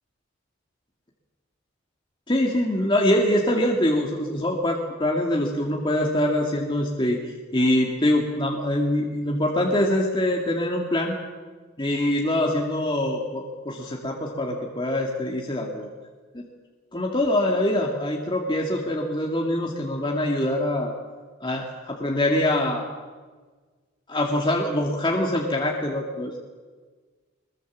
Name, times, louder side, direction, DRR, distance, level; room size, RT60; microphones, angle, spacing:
voice 1, 2.3-7.2 7.5-11.2 11.8-15.9 16.3-16.4 16.9-20.9 21.4-22.8 24.1-26.4, left 1 dB, 25° left, -1 dB, 2.2 m, -24 dB
22.5 x 21.5 x 7.5 m, 1.4 s
head